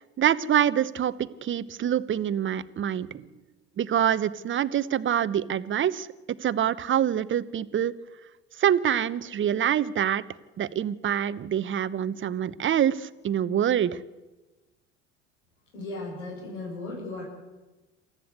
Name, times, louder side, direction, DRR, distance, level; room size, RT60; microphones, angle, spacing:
voice 1, 0.2-3.3 3.8-6.1 6.4-7.9 8.6-10.2 10.6-14.0, right 9 dB, 35° right, 16 dB, 1.0 m, -25 dB
voice 2, 15.7-17.2, left 2 dB, 80° left, -6 dB, 7.1 m, -36 dB
27.5 x 14.5 x 8.1 m, 1.2 s
hypercardioid pair, 70°, 36 cm